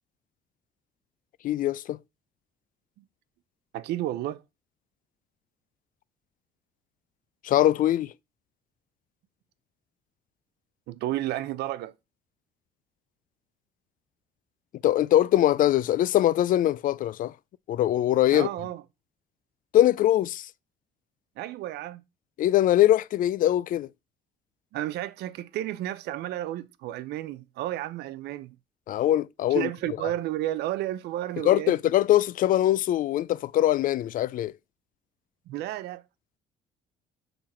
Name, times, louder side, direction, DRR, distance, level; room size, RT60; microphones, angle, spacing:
voice 1, 1.4-2.0 7.4-8.1 14.8-17.3 17.7-18.5 19.7-20.5 22.4-23.9 28.9-29.7 31.4-34.5, left 13 dB, 55° left, 0.4 m, -22 dB
voice 2, 3.7-4.4 10.9-11.9 18.3-18.8 21.4-22.0 24.7-28.6 29.5-31.7 35.5-36.0, right 14 dB, 80° right, 0.7 m, -32 dB
6.9 x 5.7 x 4.3 m
cardioid pair, 110°, 17 cm